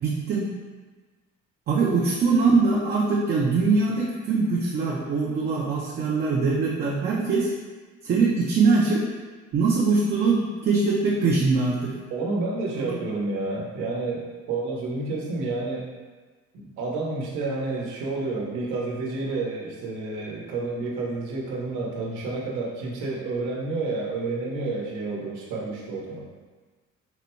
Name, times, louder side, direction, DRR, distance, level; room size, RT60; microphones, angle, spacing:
voice 1, 0.0-0.5 1.7-7.5 8.0-9.1 9.5-12.0 12.8-13.0, right 4 dB, 35° right, -3 dB, 0.5 m, -22 dB
voice 2, 12.1-15.8 16.5-26.3, right 3 dB, 90° right, -2 dB, 1.0 m, -30 dB
4.0 x 2.1 x 4.4 m, 1.4 s
cardioid pair, 140°, 30 cm